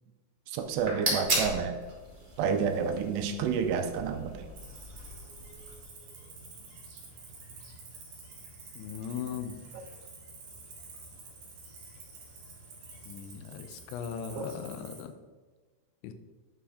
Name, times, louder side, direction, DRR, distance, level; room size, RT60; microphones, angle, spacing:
voice 1, 0.5-1.8 2.4-4.4 14.4-14.5, right 6 dB, 80° right, 7 dB, 2.6 m, -29 dB
sound 1, 0.6-5.8, right 1 dB, 25° right, 1.0 m, -36 dB
voice 2, 3.3-3.6 8.8-9.7 13.1-15.1 16.0-16.1, left 8 dB, 90° left, 9 dB, 3.1 m, -39 dB
Cricket, 4.5-15.0, right 3 dB, 50° right, 3.5 m, -49 dB
9.8 x 6.1 x 4.8 m, 1.4 s
omnidirectional pair, 5.1 m